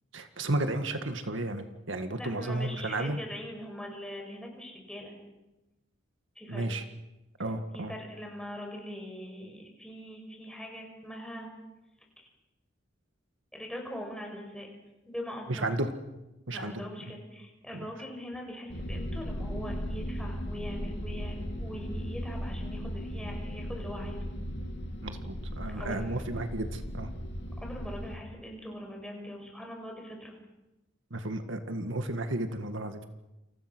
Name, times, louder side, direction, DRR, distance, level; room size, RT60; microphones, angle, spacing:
voice 1, 0.1-3.2 6.5-6.8 7.4-7.9 15.5-15.9 16.5-16.7 25.0-27.1 31.1-33.0, right 2 dB, 80° right, 7 dB, 1.9 m, -33 dB
voice 2, 2.2-5.1 6.3-6.7 7.7-11.5 12.2-12.3 13.5-14.7 15.0-15.6 16.5-24.3 25.7-26.2 27.6-30.4, equal, 5° left, 1 dB, 6.6 m, -42 dB
sound 1, 18.7-28.2, equal, 60° left, 2.9 m, -37 dB
29.5 x 28.5 x 6.2 m, 1.0 s
head